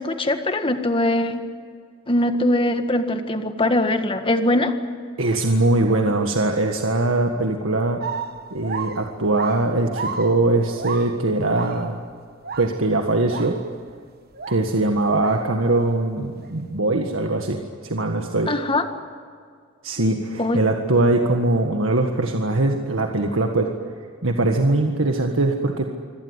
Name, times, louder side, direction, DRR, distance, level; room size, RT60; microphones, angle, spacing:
voice 1, 0.0-1.4 2.1-4.7 18.5-18.9 20.4-20.6, left 1 dB, 25° left, 7 dB, 1.7 m, -21 dB
voice 2, 5.2-8.0 8.5-12.0 12.6-13.6 14.5-18.5 19.8-23.7 24.2-25.9, right 2 dB, 85° right, 3 dB, 1.7 m, -21 dB
sound 1, 8.0-12.1 12.4-12.9 13.3-13.9 14.3-15.9 16.4-16.5, right 5 dB, 50° right, 1.2 m, -33 dB
25.5 x 17.5 x 9.7 m, 2.1 s
head